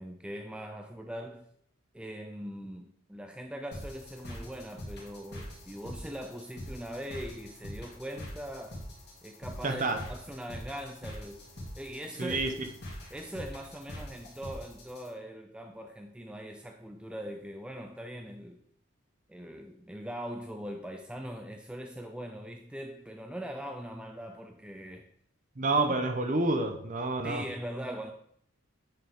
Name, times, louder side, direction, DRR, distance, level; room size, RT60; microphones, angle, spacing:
voice 1, 0.0-1.5 1.9-8.8 9.2-11.4 11.8-12.4 13.1-18.6 19.3-25.1 25.7-26.0 27.2-28.1, equal, 5° right, 4 dB, 0.3 m, -41 dB
sound 1, 3.7-15.1, equal, 50° left, 2.3 m, -44 dB
voice 2, 9.6-10.0 12.2-12.5 25.6-27.4, right 2 dB, 35° right, 6 dB, 0.8 m, -28 dB
8.6 x 5.8 x 3.7 m, 0.69 s
head